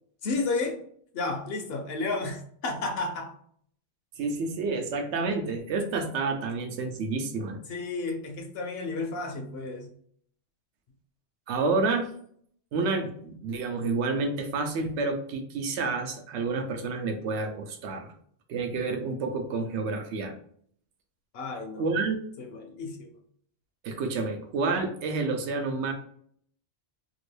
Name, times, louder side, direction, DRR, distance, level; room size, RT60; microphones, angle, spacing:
voice 1, 0.2-0.8 1.1-3.3 7.7-9.9 21.3-22.1 22.4-23.1, left 3 dB, 65° left, 0.8 m, -32 dB
voice 2, 4.2-7.6 11.5-12.1 12.7-18.1 18.5-20.3 21.8-22.2 23.8-25.9, right 3 dB, 90° right, 0.9 m, -29 dB
2.9 x 2.5 x 3.2 m
omnidirectional pair, 1.1 m